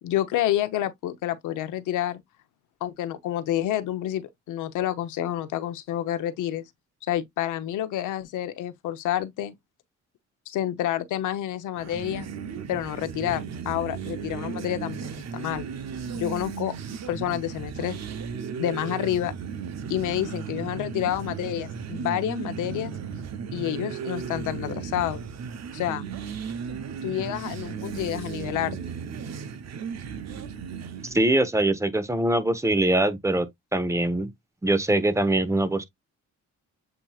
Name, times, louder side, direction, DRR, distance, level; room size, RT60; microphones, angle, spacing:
voice 1, 0.0-2.2 2.8-6.7 7.0-9.5 10.5-12.3 12.7-15.0 15.3-15.7 16.1-16.7 17.1-18.0 18.6-19.3 19.9-22.9 23.5-25.2 25.7-26.1 27.0-28.8, left 12 dB, 85° left, 0.8 m, -29 dB
sound 1, 11.7-31.2, right 7 dB, 60° right, 0.8 m, -35 dB
voice 2, 31.0-34.3 34.6-35.8, right 1 dB, 10° right, 1.0 m, -23 dB
7.8 x 2.8 x 2.4 m
cardioid pair, 90°, 30 cm